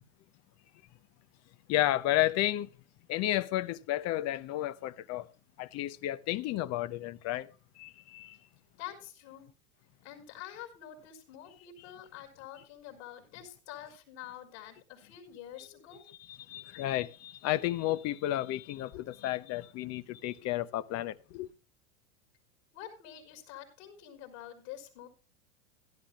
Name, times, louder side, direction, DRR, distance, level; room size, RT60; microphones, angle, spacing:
voice 1, 1.7-2.7 3.1-5.3 5.6-7.5 7.8-8.4 15.6-15.7 16.3-21.5, left 14 dB, 40° left, 0.8 m, -32 dB
voice 2, 8.8-9.5 10.0-16.0 22.7-25.1, left 11 dB, 60° left, 5.1 m, -47 dB
17.0 x 11.5 x 2.4 m
hypercardioid pair, 100°, 41 cm